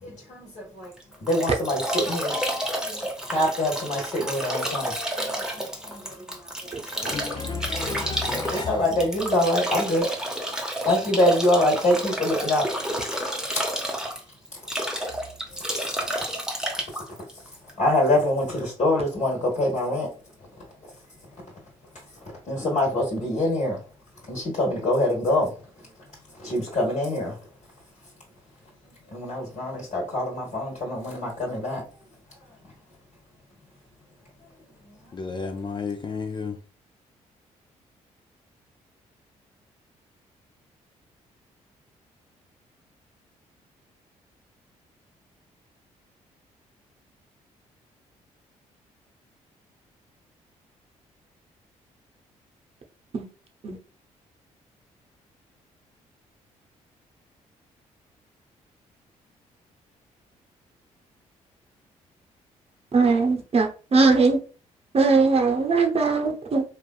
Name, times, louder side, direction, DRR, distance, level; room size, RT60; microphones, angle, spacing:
voice 1, 0.0-0.9 1.2-7.1 7.7-13.2 14.5-14.6 15.5-16.4 17.8-20.1 20.4-20.5 22.3-23.8 24.2-25.5 25.8-25.9 26.3-27.4 29.1-31.8, left 1 dB, 55° left, 1.3 m, -26 dB
Bathtub (filling or washing) / Drip / Trickle dribble, 0.8-18.1, right 1 dB, 5° right, 0.8 m, -30 dB
voice 2, 7.0-8.7 35.1-36.6, left 4 dB, 30° left, 0.4 m, -32 dB
voice 3, 62.9-64.4 64.9-66.6, right 4 dB, 40° right, 0.8 m, -20 dB
3.1 x 2.4 x 2.3 m
supercardioid pair, 55°, 15 cm